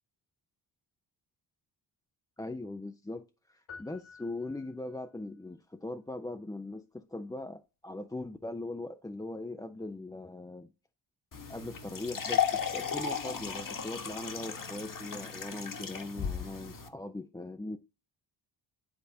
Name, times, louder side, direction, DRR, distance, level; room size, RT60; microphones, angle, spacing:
voice 1, 2.4-10.7 11.5-17.8, left 2 dB, 10° left, 0.5 m, -40 dB
sound 1, 3.7-5.1, left 5 dB, 70° left, 2.3 m, -51 dB
sound 2, 11.3-16.9, left 7 dB, 40° left, 1.3 m, -35 dB
10.0 x 4.0 x 2.7 m
cardioid pair, 70°, 49 cm